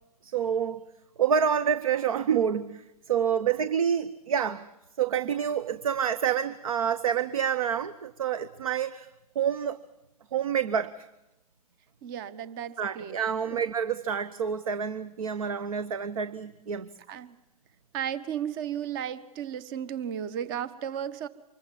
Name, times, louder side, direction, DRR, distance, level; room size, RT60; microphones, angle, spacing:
voice 1, 0.2-0.8 1.2-2.8 3.1-4.7 5.0-9.1 9.3-9.8 10.3-11.0 12.8-16.9, right 8 dB, 60° right, 0.9 m, -28 dB
voice 2, 12.0-13.2 13.4-13.6 17.1-17.4 17.9-21.3, right 9 dB, 35° right, 1.1 m, -34 dB
25.0 x 22.0 x 7.5 m
figure-of-eight pair, 120°, 20 cm